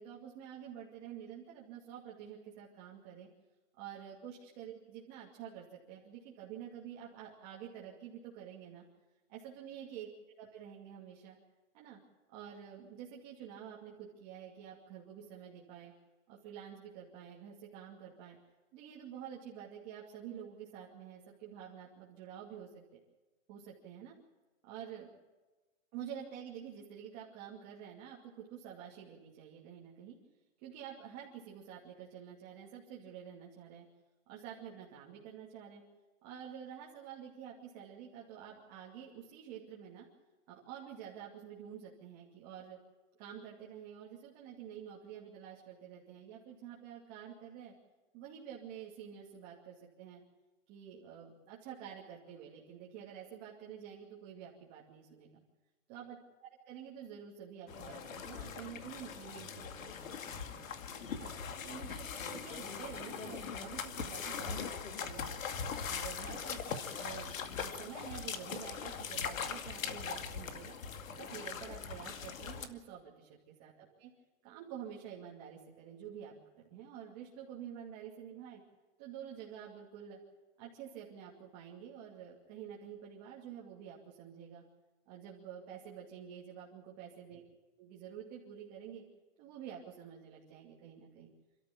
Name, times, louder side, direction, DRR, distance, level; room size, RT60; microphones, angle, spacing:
voice 1, 0.0-3.3 3.8-8.8 9.3-10.1 10.4-11.4 11.7-12.0 12.3-15.9 16.3-18.4 18.7-22.8 23.5-24.2 24.7-25.1 25.9-30.2 30.6-33.9 34.3-35.8 36.2-40.1 40.5-42.8 43.2-47.7 48.1-50.2 50.7-55.4 55.9-60.6 61.1-61.3 61.6-65.4 65.9-70.8 71.2-74.1 74.4-76.3 76.7-78.6 79.0-80.2 80.6-84.6 85.1-87.4 87.8-89.0 89.4-91.3, right 9 dB, 20° right, -4 dB, 2.6 m, -49 dB
sound 1, 57.7-72.7, left 6 dB, 75° left, 2.3 m, -41 dB
28.0 x 13.5 x 8.6 m, 1.2 s
hypercardioid pair, 175°, 40 cm